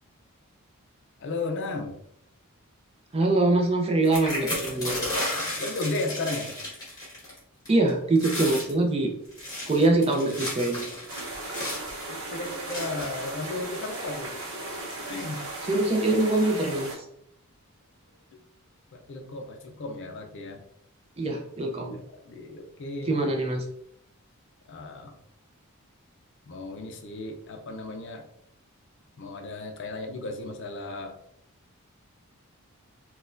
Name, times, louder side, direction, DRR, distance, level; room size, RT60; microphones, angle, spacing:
voice 1, 1.2-2.0 4.6-6.5 12.0-14.4 15.1-15.5 18.9-20.6 21.9-23.2 24.7-25.1 26.5-28.3 29.2-31.2, left 2 dB, 55° left, 5 dB, 0.5 m, -35 dB
voice 2, 3.1-5.0 7.7-9.1 9.7-10.9 15.7-17.1 21.2-22.0 23.1-23.6, right 2 dB, 25° right, 2 dB, 0.5 m, -24 dB
sound 1, 4.0-7.4 7.7-7.9 8.2-8.7 9.2-11.9 12.7-13.2 14.0-14.1 14.4-14.6, left 1 dB, 15° left, 1.4 m, -33 dB
sound 2, 11.1-17.0, right 2 dB, 60° right, 0.8 m, -36 dB
4.0 x 2.2 x 2.5 m, 0.71 s
head